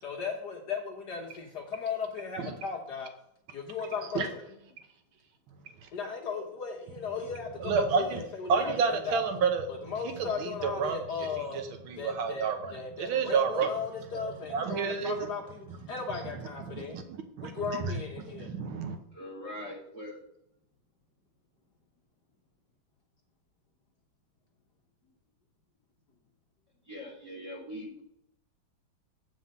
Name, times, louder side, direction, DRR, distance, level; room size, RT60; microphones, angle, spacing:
voice 1, 0.0-3.1 3.5-4.4 5.9-9.2 9.8-11.6 12.0-17.0 17.4-18.5, left 5 dB, 55° left, 1 dB, 1.7 m, -36 dB
voice 2, 7.6-8.2 8.5-9.7 10.0-11.0 11.5-12.7 13.0-13.7 14.5-15.3 16.7-17.0 17.4-17.5 17.8-17.9 18.3-19.0, right 5 dB, 90° right, 6 dB, 1.8 m, -29 dB
voice 3, 19.1-20.2 26.8-28.0, left 1 dB, 15° right, -5 dB, 3.9 m, -42 dB
8.6 x 4.8 x 5.5 m, 0.76 s
omnidirectional pair, 2.2 m